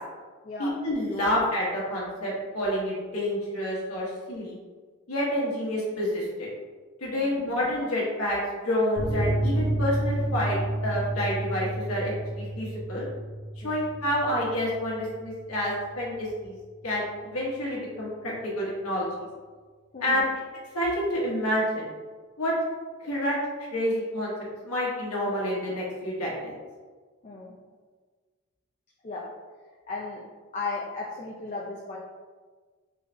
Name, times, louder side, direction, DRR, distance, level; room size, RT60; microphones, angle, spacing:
voice 1, 0.6-4.6 5.1-6.5 7.0-8.4 8.6-13.1 13.6-16.6 16.8-19.1 20.0-20.2 20.7-21.9 22.4-22.5 23.0-23.4 23.7-24.3 24.6-26.5, left 1 dB, 85° left, -5 dB, 1.1 m, -28 dB
voice 2, 7.1-7.4 13.6-13.7 19.9-20.3 27.2-27.6 29.0-29.2 29.9-30.2 30.5-32.0, left 3 dB, 35° left, -4 dB, 0.4 m, -35 dB
sound 1, 9.0-16.1 16.3-16.4 16.8-16.9, right 1 dB, 30° right, 0.6 m, -31 dB
3.8 x 3.2 x 2.5 m, 1.5 s
head